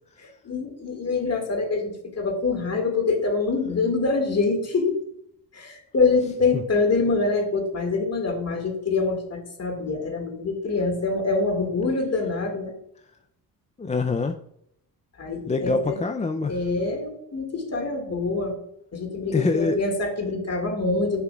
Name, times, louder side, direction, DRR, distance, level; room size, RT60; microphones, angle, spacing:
voice 1, 0.2-5.0 5.5-12.7 15.2-16.0 16.5-18.6 18.9-21.2, left 3 dB, 40° left, 3 dB, 2.0 m, -25 dB
voice 2, 13.8-14.4 15.5-16.6 19.3-19.8, left 3 dB, 20° left, 6 dB, 0.4 m, -24 dB
9.5 x 5.8 x 2.4 m, 0.73 s
supercardioid pair, 65°, 40 cm